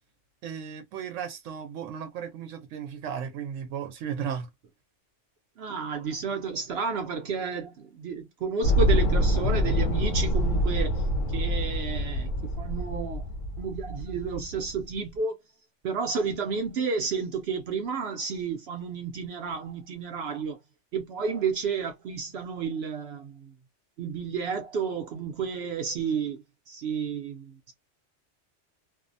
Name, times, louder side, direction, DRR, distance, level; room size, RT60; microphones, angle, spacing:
voice 1, 0.4-4.5, right 8 dB, 90° right, 0.9 m, -35 dB
voice 2, 5.6-13.3 13.6-15.4 15.8-20.6 20.9-23.5 24.0-27.7, right 5 dB, 65° right, 0.7 m, -31 dB
sound 1, 8.6-14.9, equal, 90° left, 1.0 m, -26 dB
2.6 x 2.0 x 2.5 m
omnidirectional pair, 1.3 m